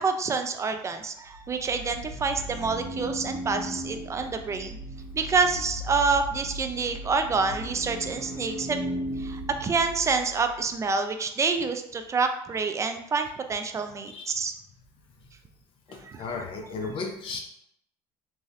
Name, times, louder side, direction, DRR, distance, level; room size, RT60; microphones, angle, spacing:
voice 1, 0.0-4.8 5.1-8.8 9.2-14.5 16.0-16.2, right 4 dB, 25° right, 7 dB, 0.4 m, -27 dB
sound 1, 1.3-10.6, equal, 60° right, 1.1 m, -37 dB
voice 2, 14.1-14.4 15.9-17.4, left 4 dB, 50° left, 2 dB, 0.5 m, -35 dB
3.0 x 2.6 x 2.4 m, 0.76 s
supercardioid pair, 95°, 11 cm